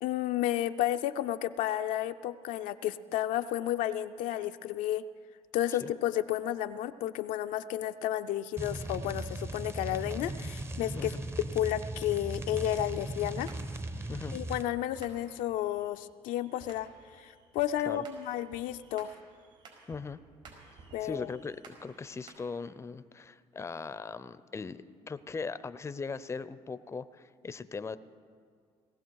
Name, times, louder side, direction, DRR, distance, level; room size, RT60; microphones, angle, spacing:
voice 1, 0.0-5.0 5.5-11.1 11.5-13.5 14.3-16.9 17.2-19.1 20.9-21.3, left 12 dB, 75° left, 8 dB, 0.5 m, -32 dB
sound 1, 8.6-14.7, right 1 dB, 20° right, 0.7 m, -38 dB
voice 2, 10.9-11.3 14.1-14.4 17.9-18.0 19.9-20.2 21.0-21.6 21.8-24.8 25.1-28.0, left 4 dB, 20° left, 14 dB, 0.5 m, -39 dB
sound 2, 13.2-22.4, right 4 dB, 70° right, 4.9 m, -56 dB
19.0 x 15.0 x 4.7 m, 2.1 s
supercardioid pair, 80°, 14 cm